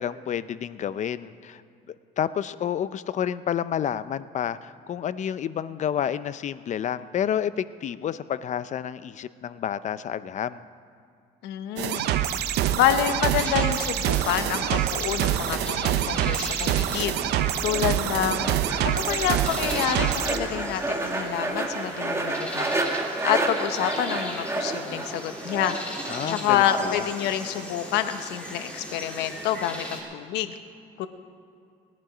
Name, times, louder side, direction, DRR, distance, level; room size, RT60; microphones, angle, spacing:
voice 1, 0.0-1.6 2.2-10.6 26.1-27.1, left 9 dB, 45° left, 15 dB, 0.5 m, -29 dB
voice 2, 11.4-12.1 12.7-17.2 17.6-18.5 18.8-22.7 23.2-25.8 26.2-30.6 31.0-31.1, left 10 dB, 90° left, 9 dB, 0.9 m, -27 dB
sound 1, 11.8-20.4, right 11 dB, 80° right, 0.7 m, -26 dB
sound 2, 13.3-30.0, equal, 5° left, 3.1 m, -39 dB
sound 3, 17.0-26.9, right 2 dB, 15° right, 1.8 m, -31 dB
20.0 x 10.5 x 5.0 m, 2.4 s
cardioid pair, 110°, 17 cm